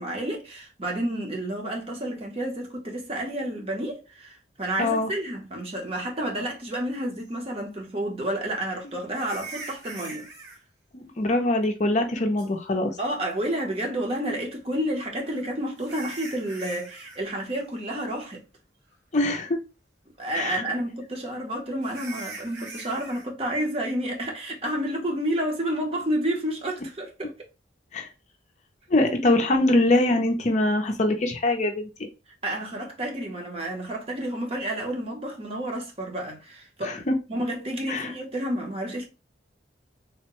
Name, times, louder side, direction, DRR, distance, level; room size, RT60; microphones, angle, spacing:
voice 1, 0.0-10.3 13.0-18.4 20.2-27.3 32.4-39.1, right 1 dB, 30° right, 0.8 m, -30 dB
voice 2, 4.8-5.1 10.9-13.0 19.1-19.6 20.3-20.6 27.9-28.1 28.9-31.9 36.8-37.1 37.9-38.1, left 2 dB, 40° left, 0.5 m, -23 dB
sound 1, 7.3-7.4 9.1-10.6 12.4-12.5 15.0-17.2 17.5-17.8 18.2-18.3 18.9-19.0 21.8-23.3, right 3 dB, 70° right, 1.2 m, -42 dB
3.5 x 2.1 x 2.9 m
head